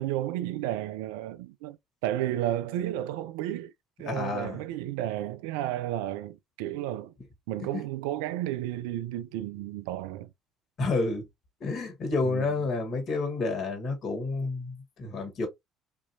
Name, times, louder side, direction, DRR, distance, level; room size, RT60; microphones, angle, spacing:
voice 1, 0.0-3.7 4.0-7.1 7.5-10.3 12.2-12.5, right 13 dB, 75° right, 0.3 m, -32 dB
voice 2, 4.0-4.6 10.8-11.3 11.6-15.5, left 3 dB, 55° left, 1.8 m, -30 dB
4.5 x 2.8 x 2.6 m
hypercardioid pair, 55°, 0 cm